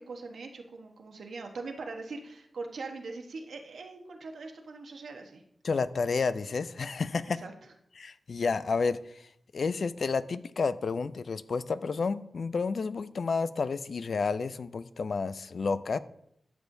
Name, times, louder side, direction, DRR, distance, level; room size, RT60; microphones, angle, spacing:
voice 1, 0.0-5.4 7.3-7.5, right 3 dB, 90° right, 3 dB, 1.1 m, -41 dB
voice 2, 5.6-7.4 8.0-9.0 9.5-16.0, left 4 dB, 70° left, 15 dB, 0.4 m, -30 dB
12.0 x 6.9 x 2.7 m, 0.74 s
wide cardioid pair, 80°, 0 cm